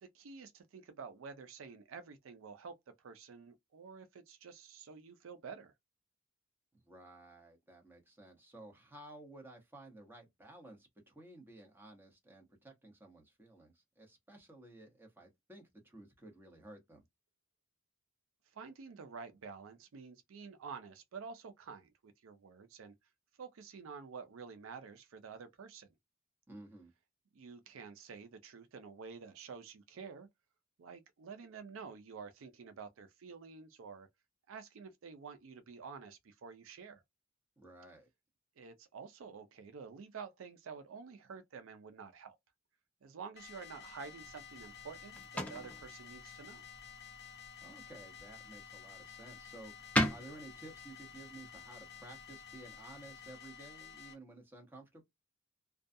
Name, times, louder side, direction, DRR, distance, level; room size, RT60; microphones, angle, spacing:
voice 1, 0.0-5.7 18.5-22.9 23.4-25.9 27.3-30.3 30.8-34.1 34.5-37.0 38.6-42.4 43.0-46.6, right 5 dB, 75° right, 0.4 m, -49 dB
voice 2, 6.7-17.0 26.5-26.9 37.6-38.1 47.6-55.0, right 2 dB, 10° right, 0.9 m, -54 dB
sound 1, 43.4-54.1, left 8 dB, 55° left, 0.6 m, -52 dB
sound 2, 44.2-53.3, left 1 dB, 5° left, 0.5 m, -41 dB
2.3 x 2.2 x 2.6 m
head